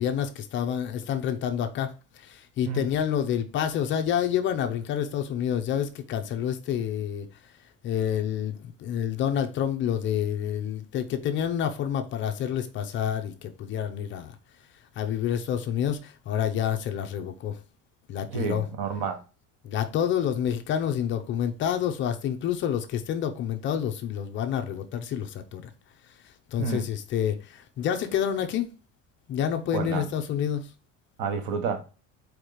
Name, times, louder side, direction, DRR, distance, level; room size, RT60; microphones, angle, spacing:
voice 1, 0.0-1.9 2.1-7.3 7.8-14.3 15.0-17.6 18.1-18.7 19.6-25.7 26.5-28.7 29.3-30.7, left 9 dB, 35° left, 0.6 m, -28 dB
voice 2, 18.2-19.2 26.6-26.9 29.7-30.0 31.2-31.8, right 6 dB, 80° right, 1.5 m, -30 dB
4.7 x 4.6 x 5.0 m
cardioid pair, 175°, 35 cm